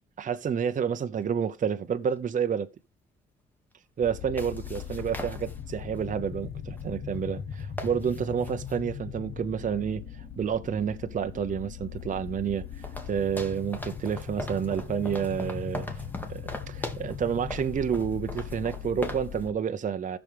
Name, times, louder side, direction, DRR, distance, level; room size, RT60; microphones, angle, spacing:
voice 1, 0.2-2.7 4.0-10.0 10.4-16.0 16.3-20.2, right 7 dB, 40° right, 0.7 m, -29 dB
sound 1, 1.2-1.3 4.1-6.0 6.8-6.9 7.1-7.2 7.5-8.8 11.3-11.4 12.0-19.5, left 1 dB, 10° left, 1.7 m, -41 dB
sound 2, 4.0-19.5, left 8 dB, 50° left, 1.2 m, -39 dB
14.5 x 6.2 x 3.4 m
cardioid pair, 90°, 20 cm